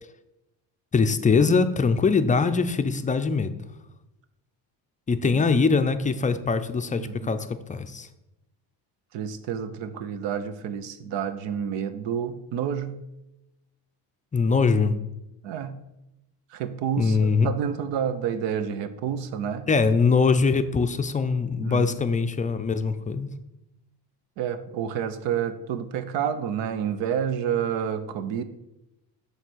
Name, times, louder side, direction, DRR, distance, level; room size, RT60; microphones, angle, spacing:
voice 1, 0.9-3.6 5.1-8.1 14.3-15.0 17.0-17.5 19.7-23.3, left 4 dB, 20° left, 10 dB, 0.3 m, -22 dB
voice 2, 7.0-7.3 9.1-13.0 15.4-15.8 16.5-19.7 21.6-21.9 24.4-28.4, right 8 dB, 85° right, 11 dB, 0.7 m, -29 dB
7.2 x 3.3 x 6.1 m, 0.92 s
cardioid pair, 110°, 43 cm